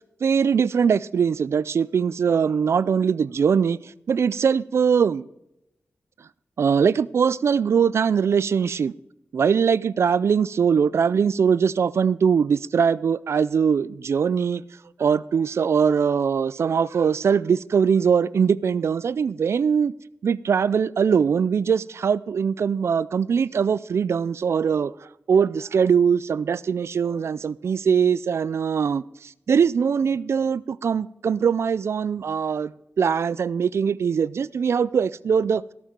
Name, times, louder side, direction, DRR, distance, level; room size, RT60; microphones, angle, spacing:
voice 1, 0.2-5.3 6.6-8.9 9.3-14.6 15.0-19.9 20.2-24.9 25.3-32.7 33.0-35.6, right 6 dB, 70° right, 0.3 m, -21 dB
17.0 x 7.3 x 5.2 m
wide cardioid pair, 100°, 5 cm